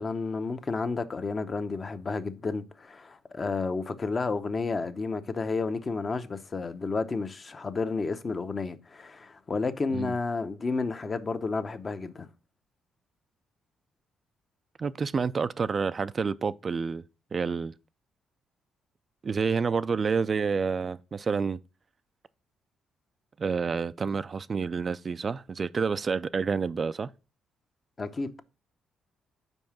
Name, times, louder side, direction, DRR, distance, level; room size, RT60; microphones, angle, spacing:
voice 1, 0.0-12.3 28.0-28.4, left 4 dB, 35° left, 0.7 m, -31 dB
voice 2, 14.8-17.0 17.3-17.7 19.2-21.6 23.4-27.1, right 5 dB, 40° right, 0.3 m, -29 dB
5.3 x 4.7 x 5.9 m
cardioid pair, 90°, 0 cm